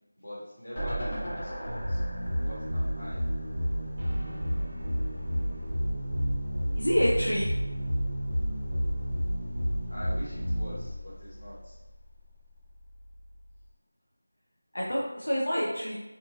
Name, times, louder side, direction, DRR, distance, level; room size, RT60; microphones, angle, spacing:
voice 1, 0.2-2.0 2.4-3.2 9.9-11.8, equal, 50° left, -8 dB, 1.4 m, -43 dB
sound 1, 0.8-4.0 4.4-4.5 4.7-4.8, right 1 dB, 15° left, 0.6 m, -37 dB
sound 2, 1.6-11.8, equal, 35° right, 0.7 m, -30 dB
voice 2, 6.8-7.5 14.7-16.0, equal, 75° left, -6 dB, 0.7 m, -27 dB
2.9 x 2.5 x 2.4 m, 1.0 s
figure-of-eight pair, 175°, 0 cm